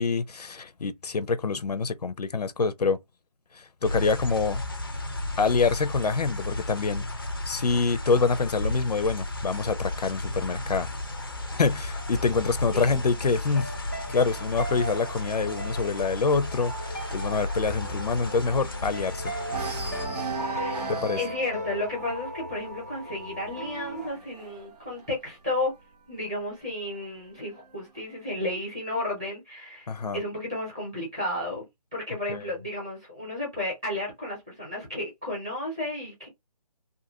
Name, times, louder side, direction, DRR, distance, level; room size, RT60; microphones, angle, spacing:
voice 1, 0.0-3.0 3.5-4.6 5.4-7.1 7.5-10.9 11.6-13.7 14.1-19.3 20.9-21.2 29.9-30.2 32.3-32.4, left 4 dB, 80° left, 0.6 m, -26 dB
sound 1, 3.8-20.1, left 1 dB, 35° left, 0.4 m, -34 dB
sound 2, 10.7-14.3 14.7-15.1 15.3-15.4 15.8-19.1 19.4-26.0 26.9-27.9, right 3 dB, 80° right, 0.8 m, -39 dB
sound 3, 11.9-24.1, right 1 dB, 25° right, 0.4 m, -38 dB
voice 2, 20.5-20.9 21.2-25.7 26.1-31.6 31.9-36.3, left 1 dB, 10° right, 0.8 m, -33 dB
2.7 x 2.5 x 2.6 m
hypercardioid pair, 175°, 20 cm